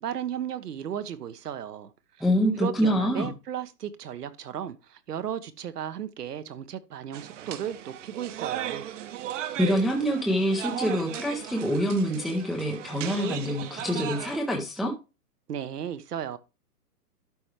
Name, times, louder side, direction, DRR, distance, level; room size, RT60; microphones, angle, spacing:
voice 1, 0.0-1.9 2.2-2.3 2.6-8.8 15.5-16.4, right 9 dB, 75° right, 1.1 m, -35 dB
voice 2, 2.2-3.3 9.6-14.9, equal, ahead, 0.5 m, -26 dB
sound 1, 7.1-14.4, right 11 dB, 50° right, 1.0 m, -36 dB
12.0 x 4.4 x 3.2 m
hypercardioid pair, 130°, 47 cm